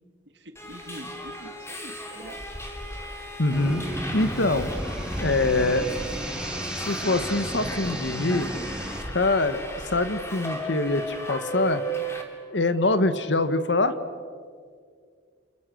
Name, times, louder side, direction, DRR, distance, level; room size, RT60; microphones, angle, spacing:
voice 1, 0.3-2.5, right 1 dB, 65° right, 6 dB, 2.5 m, -44 dB
Subway metro underground, 0.5-12.2, right 1 dB, 15° left, 3.0 m, -35 dB
voice 2, 3.4-3.9 4.1-4.7 5.2-5.9 6.8-8.5 9.1-11.8 12.5-13.9, left 2 dB, 70° left, 11 dB, 1.5 m, -24 dB
sound 1, 3.5-9.0, right 1 dB, 5° right, 2.4 m, -33 dB
30.0 x 28.0 x 6.5 m, 2.1 s
head